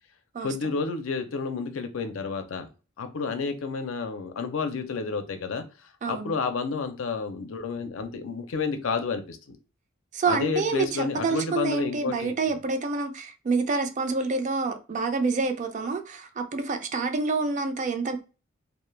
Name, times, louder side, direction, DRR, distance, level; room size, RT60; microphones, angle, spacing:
voice 1, 0.4-2.7 3.0-5.6 6.1-9.6 10.3-12.4, left 4 dB, 90° left, 0.5 m, -30 dB
voice 2, 6.0-6.4 10.1-18.2, right 4 dB, 40° right, 0.4 m, -27 dB
2.2 x 2.0 x 3.1 m
head